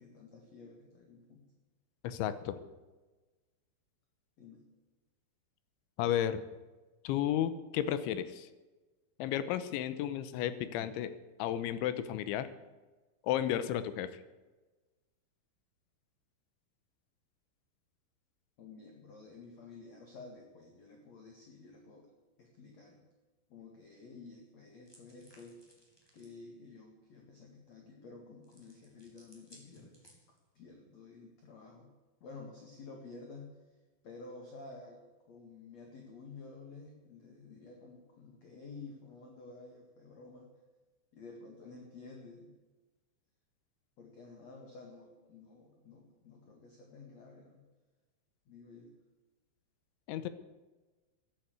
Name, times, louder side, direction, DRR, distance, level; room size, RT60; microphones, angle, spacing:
voice 1, 0.0-1.5 4.4-4.6 18.6-22.1 22.4-23.0 23.5-25.6 26.1-30.0 30.5-31.9 32.2-33.7 34.0-35.0 35.3-40.5 41.1-42.5 44.0-47.6 48.5-48.9, left 3 dB, 50° left, 2 dB, 2.3 m, -51 dB
voice 2, 2.0-2.6 6.0-6.4 7.0-8.5 9.2-11.1 11.4-12.5 13.2-14.1 50.1-50.3, left 11 dB, 85° left, 13 dB, 3.2 m, -33 dB
sound 1, 24.8-26.4 28.4-30.6, equal, 5° left, 3.3 m, -62 dB
14.5 x 11.0 x 8.1 m, 1.2 s
omnidirectional pair, 5.4 m